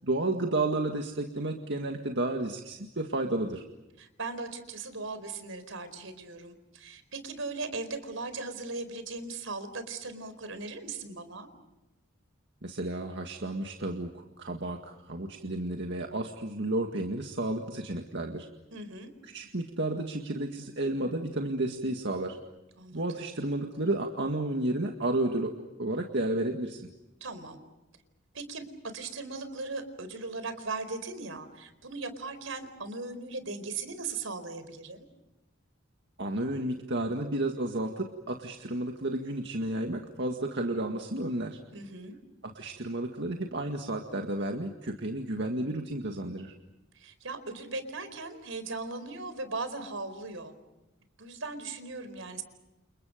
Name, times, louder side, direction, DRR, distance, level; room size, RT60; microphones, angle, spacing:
voice 1, 0.0-3.6 12.6-18.5 19.2-22.4 22.9-25.5 25.8-26.9 36.2-41.6 42.4-46.5, right 1 dB, 60° right, 3 dB, 2.0 m, -32 dB
voice 2, 4.0-11.5 18.7-19.1 22.8-23.3 27.2-27.6 28.3-28.6 28.9-35.0 41.7-42.1 46.9-50.6 51.2-52.4, right 3 dB, 80° right, 10 dB, 4.5 m, -38 dB
29.5 x 29.0 x 5.2 m, 0.98 s
head